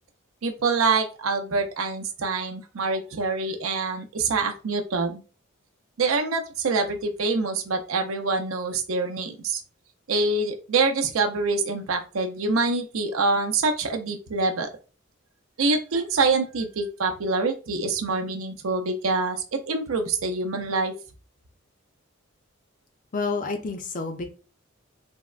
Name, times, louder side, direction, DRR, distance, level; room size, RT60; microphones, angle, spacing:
voice 1, 0.4-5.2 6.0-9.6 10.1-14.7 15.6-20.9, right 3 dB, 80° right, 5 dB, 0.5 m, -25 dB
voice 2, 23.1-24.3, left 4 dB, 40° left, 6 dB, 0.5 m, -29 dB
3.5 x 2.1 x 2.3 m, 0.34 s
head